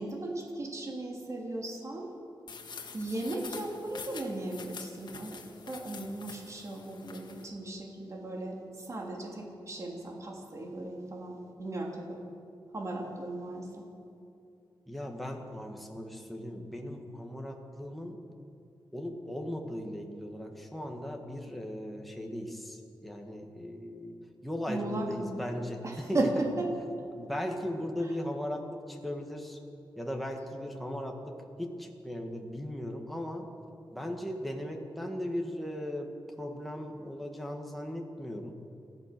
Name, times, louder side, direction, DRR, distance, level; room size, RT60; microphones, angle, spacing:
voice 1, 0.0-2.1 2.9-5.4 5.6-12.2 12.7-13.9 24.7-25.3 25.8-26.7, right 2 dB, 35° right, 0 dB, 3.2 m, -36 dB
sound 1, 2.5-7.5, left 5 dB, 60° left, 1.8 m, -46 dB
voice 2, 14.9-18.2 18.9-24.2 24.4-26.3 27.1-29.6 29.9-33.5 33.9-36.1 36.4-38.5, left 1 dB, ahead, 2 dB, 1.8 m, -37 dB
28.0 x 14.0 x 6.8 m, 2.6 s
wide cardioid pair, 150°, 8 cm